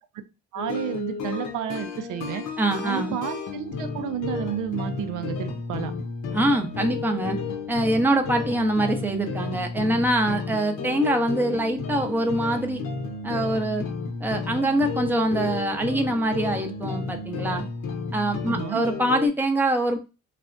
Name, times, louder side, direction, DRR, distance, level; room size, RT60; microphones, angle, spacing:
voice 1, 0.5-2.4 2.8-5.9 18.5-18.8, right 10 dB, 85° right, 8 dB, 0.5 m, -31 dB
sound 1, 0.6-19.3, left 4 dB, 75° left, 0.7 m, -32 dB
voice 2, 2.6-3.1 6.3-7.4 7.7-12.8 13.2-13.8 14.2-17.6 18.1-20.0, right 1 dB, 5° right, 4 dB, 0.5 m, -24 dB
3.2 x 2.0 x 2.5 m, 0.29 s
cardioid pair, 90°, 30 cm